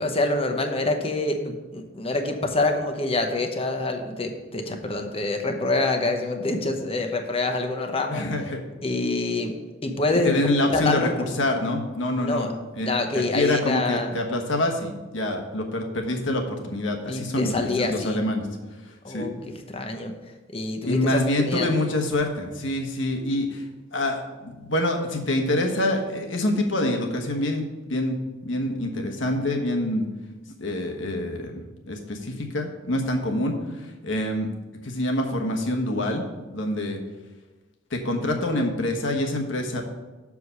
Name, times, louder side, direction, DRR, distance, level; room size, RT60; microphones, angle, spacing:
voice 1, 0.0-8.3 8.8-9.5 9.8-10.4 10.7-11.1 12.2-12.5 12.8-14.1 17.0-18.2 19.0-20.1 20.5-21.7, left 2 dB, 30° left, 4 dB, 0.9 m, -26 dB
voice 2, 8.1-8.6 10.2-11.1 11.4-12.5 12.7-12.9 13.3-18.5 18.8-19.3 20.8-23.6 23.9-28.2 28.4-30.0 30.6-34.5 34.8-36.2 36.5-37.0 37.9-39.8, left 1 dB, 75° left, 2 dB, 1.2 m, -26 dB
7.0 x 4.8 x 6.8 m, 1.2 s
head